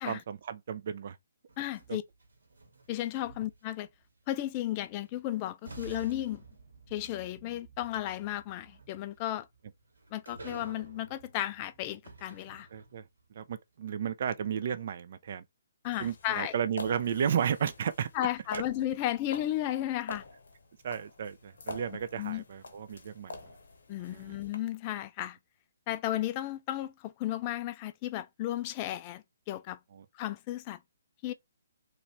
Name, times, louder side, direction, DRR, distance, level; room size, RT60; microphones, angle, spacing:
voice 1, 0.1-1.2 1.9-2.0 12.7-13.0 13.3-15.4 16.0-18.1 18.5-18.6 20.8-23.4 24.0-24.4 29.9-30.1, right 8 dB, 45° right, 0.4 m, -33 dB
sound 1, 1.5-3.9 5.1-5.2 5.6-13.1, right 3 dB, 75° right, 1.3 m, -51 dB
voice 2, 1.6-2.0 2.9-3.9 4.3-6.4 6.9-9.5 10.1-12.7 15.8-16.5 18.1-20.2 22.2-22.4 23.9-25.4 25.9-29.8 30.1-30.8 31.2-31.3, left 13 dB, 30° left, 0.4 m, -34 dB
sound 2, 15.8-24.6, left 2 dB, 60° left, 0.8 m, -47 dB
3.0 x 2.5 x 3.2 m
figure-of-eight pair, 135°, 0 cm